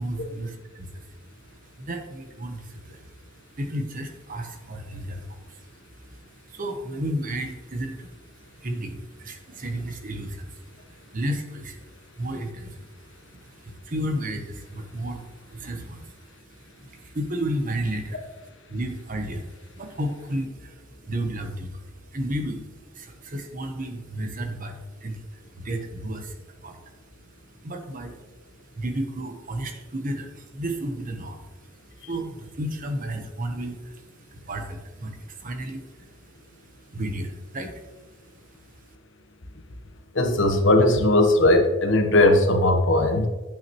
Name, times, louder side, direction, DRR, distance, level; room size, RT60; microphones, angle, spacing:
voice 1, 0.0-18.3 18.7-27.0 27.2-38.3 38.6-38.8, right 1 dB, 40° right, 5 dB, 1.1 m, -33 dB
voice 2, 40.1-43.3, left 1 dB, 65° left, 4 dB, 1.1 m, -18 dB
8.9 x 8.5 x 3.1 m, 1.2 s
head